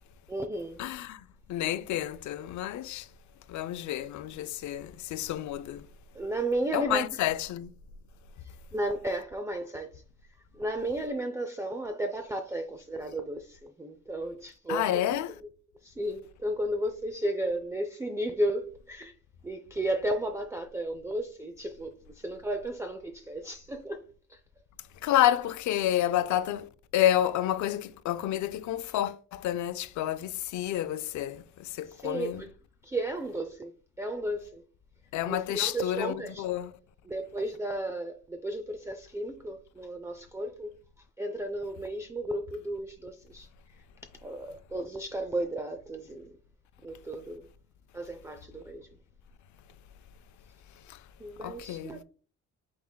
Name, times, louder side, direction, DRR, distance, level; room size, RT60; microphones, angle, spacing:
voice 1, 0.3-0.8 6.1-7.0 8.4-10.0 10.5-15.0 15.8-19.1 19.4-24.0 24.3-24.4 31.9-32.5 32.8-33.7 34.0-34.6 35.2-36.5 37.1-40.7 41.2-43.8 44.2-46.3 46.8-47.5 47.9-48.9 51.2-52.0, right 1 dB, 10° right, 0.4 m, -34 dB
voice 2, 0.8-3.1 3.5-5.9 6.7-7.7 14.7-15.4 25.0-32.4 35.1-36.7 50.7-51.1 51.4-52.0, left 12 dB, 70° left, 0.5 m, -30 dB
5.8 x 3.7 x 2.2 m
cardioid pair, 90°, 30 cm